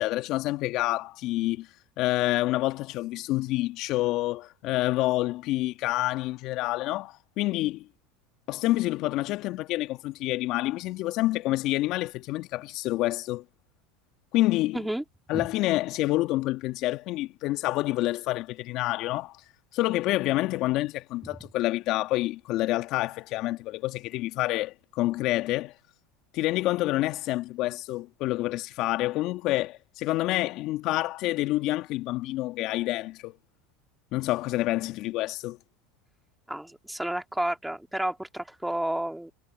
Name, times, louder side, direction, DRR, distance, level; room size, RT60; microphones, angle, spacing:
voice 1, 0.0-1.7 2.0-7.9 8.5-13.4 14.3-14.8 15.3-19.4 19.7-25.7 26.3-33.4 34.1-35.6, left 17 dB, 55° left, 2.0 m, -28 dB
voice 2, 14.7-15.0 15.3-15.5 36.5-39.3, right 1 dB, 5° right, 2.9 m, -31 dB
hypercardioid pair, 90°, 0 cm